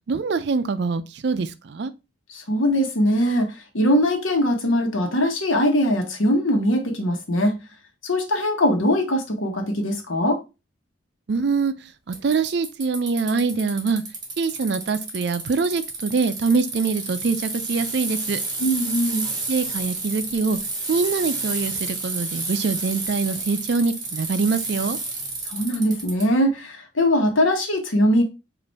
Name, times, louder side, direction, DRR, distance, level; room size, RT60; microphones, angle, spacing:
voice 1, 0.1-1.9 11.3-11.7 12.1-14.0 14.4-18.4 19.5-20.6 20.9-25.0, right 4 dB, 55° right, 0.4 m, -24 dB
voice 2, 2.3-7.6 8.0-10.4 18.6-19.3 25.5-28.2, equal, 85° left, 1.1 m, -21 dB
Bicycle, 12.1-26.2, right 3 dB, 20° right, 1.2 m, -30 dB
5.2 x 2.6 x 3.3 m
head